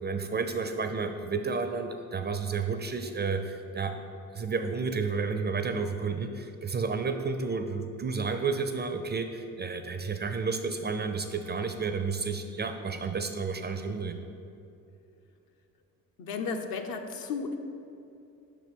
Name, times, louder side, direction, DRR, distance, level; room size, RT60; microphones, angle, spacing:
voice 1, 0.0-3.9 4.3-14.2, right 4 dB, 25° right, 7 dB, 0.4 m, -31 dB
voice 2, 16.2-17.6, left 5 dB, 55° left, 5 dB, 0.7 m, -34 dB
5.9 x 4.4 x 5.2 m, 2.7 s
hypercardioid pair, 55°, 42 cm